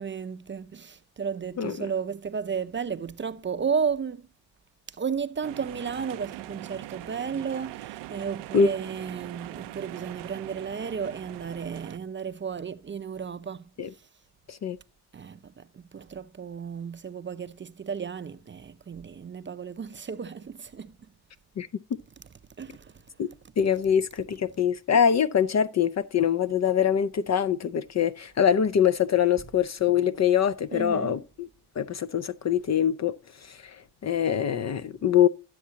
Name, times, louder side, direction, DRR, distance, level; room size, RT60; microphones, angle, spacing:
voice 1, 0.0-4.3 4.9-14.1 15.1-21.1 22.6-23.0 30.7-31.2, right 6 dB, 30° right, 0.6 m, -33 dB
sound 1, 5.4-12.0, right 16 dB, 85° right, 0.5 m, -42 dB
voice 2, 23.6-31.5 31.8-33.2 33.4-35.3, left 8 dB, 45° left, 0.5 m, -24 dB
11.5 x 7.3 x 2.8 m
cardioid pair, 70°, 40 cm